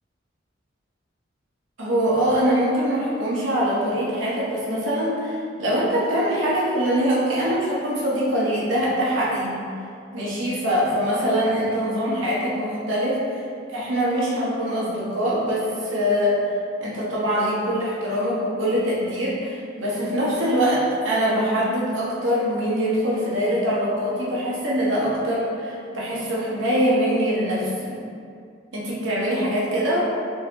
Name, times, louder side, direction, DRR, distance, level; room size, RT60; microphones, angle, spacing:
voice 1, 1.8-9.6 10.1-13.4 13.7-16.4 16.8-28.0 28.7-30.0, equal, 75° right, -7 dB, 0.9 m, -23 dB
3.8 x 2.9 x 2.8 m, 2.4 s
head